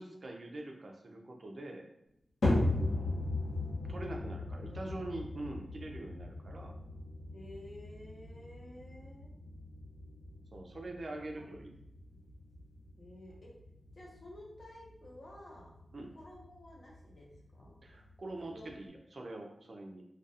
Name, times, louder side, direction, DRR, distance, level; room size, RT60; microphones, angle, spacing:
voice 1, 0.0-1.9 2.9-3.2 3.9-6.7 10.5-11.8 15.9-16.1 17.8-20.0, right 2 dB, 55° right, 2 dB, 0.4 m, -44 dB
sound 1, 2.4-18.9, left 2 dB, 90° left, 0.8 m, -38 dB
voice 2, 4.7-5.2 7.3-9.3 11.1-11.5 11.9-12.2 13.0-13.5 13.9-15.8 16.1-17.8 18.5-18.7, left 1 dB, 50° left, -3 dB, 0.7 m, -53 dB
2.4 x 2.2 x 2.6 m, 0.81 s
wide cardioid pair, 115°, 0 cm